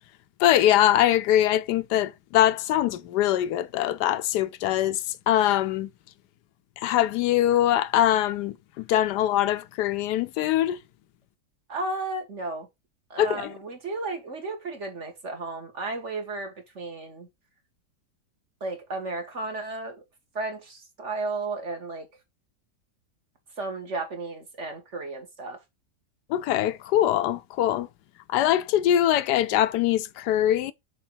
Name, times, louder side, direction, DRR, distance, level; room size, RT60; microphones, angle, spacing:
voice 1, 0.4-5.9 6.8-10.8 13.2-13.5 26.3-27.9 28.3-30.7, left 12 dB, 85° left, 1.2 m, -23 dB
voice 2, 11.7-12.7 13.1-17.3 18.6-20.0 20.3-22.1 23.6-25.6, right 3 dB, 45° right, 1.7 m, -33 dB
6.4 x 4.0 x 4.5 m
omnidirectional pair, 1.7 m